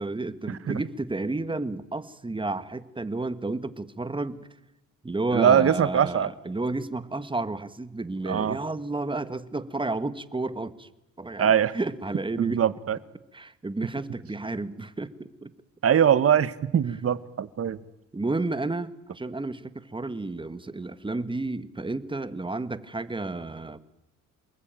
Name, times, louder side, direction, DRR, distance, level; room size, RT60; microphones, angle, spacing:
voice 1, 0.0-4.4 5.0-10.9 11.2-12.6 13.3-15.5 18.1-23.8, right 2 dB, 15° right, 13 dB, 1.6 m, -31 dB
voice 2, 5.3-6.3 8.3-8.6 11.4-11.7 12.4-13.0 15.8-17.8, right 8 dB, 50° right, 15 dB, 1.4 m, -22 dB
28.5 x 20.5 x 9.1 m, 0.91 s
cardioid pair, 90°, 30 cm